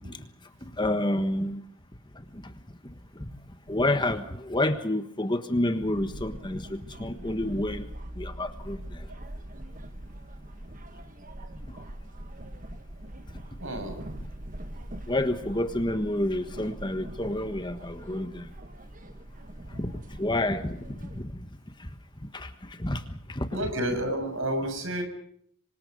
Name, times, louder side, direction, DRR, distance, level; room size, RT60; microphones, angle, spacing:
voice 1, 0.8-1.6 2.3-2.4 3.2-3.3 3.7-7.9 8.1-9.1 15.1-18.5 19.7-21.3 21.8-21.9 22.3-23.6, left 1 dB, 20° left, 9 dB, 1.4 m, -29 dB
sound 1, 5.9-21.2, right 1 dB, 35° right, 1.5 m, -42 dB
voice 2, 13.6-14.0 23.5-25.0, right 1 dB, 60° right, 6 dB, 7.2 m, -30 dB
27.5 x 25.0 x 5.4 m, 0.66 s
head